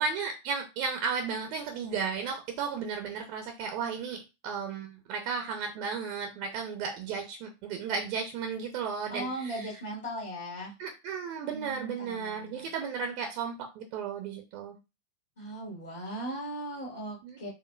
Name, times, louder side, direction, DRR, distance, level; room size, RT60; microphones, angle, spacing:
voice 1, 0.0-9.7 10.8-14.8 17.2-17.5, right 5 dB, 45° right, 4 dB, 0.8 m, -34 dB
voice 2, 9.1-10.7 11.5-12.7 15.4-17.5, right 1 dB, 65° left, -3 dB, 1.9 m, -38 dB
4.4 x 3.5 x 2.5 m, 0.26 s
figure-of-eight pair, 90°, 0 cm